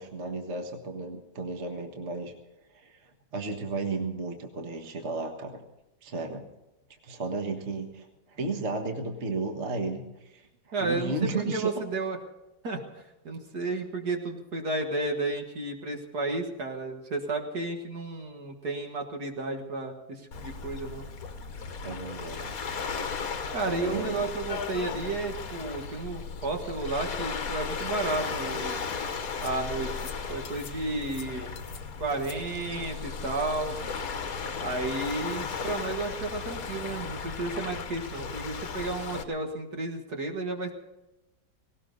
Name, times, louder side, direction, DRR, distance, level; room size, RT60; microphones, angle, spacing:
voice 1, 0.0-2.3 2.7-5.6 6.0-6.5 7.0-10.5 10.8-11.7 21.8-22.5 23.7-24.3, right 3 dB, 35° right, 4 dB, 1.7 m, -33 dB
voice 2, 10.7-12.2 12.6-21.1 23.5-28.8 29.4-30.0 30.3-31.5 32.0-33.8 34.6-40.7, right 2 dB, 55° right, 3 dB, 2.1 m, -32 dB
Waves surf, 20.3-39.2, left 5 dB, 50° left, 1.5 m, -36 dB
sound 1, 24.5-25.1 25.5-25.6 25.8-25.9 27.0-27.1 27.8-28.4 29.4-29.6 29.9-30.1 30.4-30.8 31.0-31.8 32.1-32.4, left 6 dB, 80° left, 1.9 m, -41 dB
18.5 x 18.0 x 4.0 m, 0.97 s
omnidirectional pair, 2.2 m